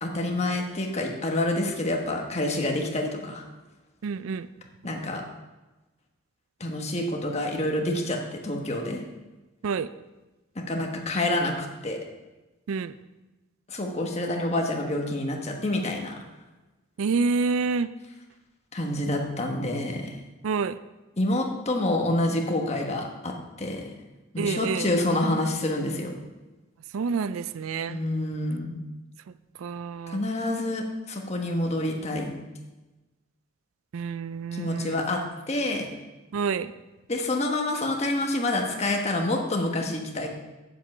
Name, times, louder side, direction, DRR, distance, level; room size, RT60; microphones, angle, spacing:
voice 1, 0.0-3.4 4.8-5.2 6.6-9.0 10.5-12.0 13.7-16.2 18.7-20.2 21.2-23.9 24.3-26.2 27.9-28.8 30.1-32.3 34.5-35.2 35.5-35.9 37.1-40.3, left 1 dB, 30° left, 2 dB, 1.2 m, -27 dB
voice 2, 4.0-4.5 9.6-9.9 12.7-12.9 17.0-17.9 20.4-20.8 24.4-24.9 26.9-28.0 29.6-30.2 33.9-35.0 36.3-36.7, right 5 dB, 75° right, 15 dB, 0.4 m, -28 dB
8.4 x 7.3 x 5.4 m, 1.1 s
head